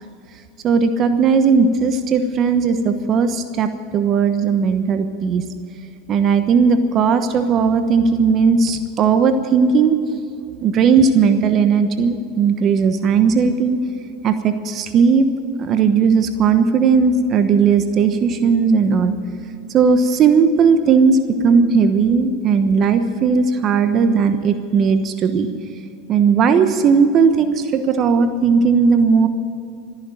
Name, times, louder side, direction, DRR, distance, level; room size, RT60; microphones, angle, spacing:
voice 1, 0.6-5.4 6.1-10.2 10.6-13.8 14.2-15.3 15.6-19.1 19.7-25.5 26.1-29.3, right 5 dB, 40° right, 9 dB, 1.1 m, -16 dB
14.0 x 10.5 x 9.2 m, 2.5 s
hypercardioid pair, 105°, 0 cm